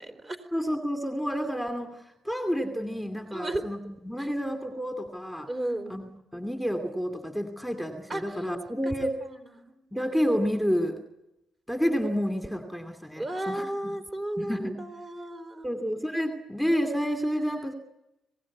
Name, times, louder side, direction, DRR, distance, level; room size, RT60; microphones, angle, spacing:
voice 1, 0.0-0.5 3.3-3.6 4.2-4.3 5.5-6.0 8.1-8.4 8.8-8.9 9.2-9.7 13.2-15.7, right 1 dB, 25° right, 9 dB, 4.1 m, -34 dB
voice 2, 0.5-5.5 5.9-9.1 9.9-11.0 11.7-13.9 14.4-14.8 15.6-17.7, equal, ahead, 6 dB, 2.6 m, -30 dB
26.5 x 18.5 x 9.6 m, 0.92 s
cardioid pair, 90°, 0 cm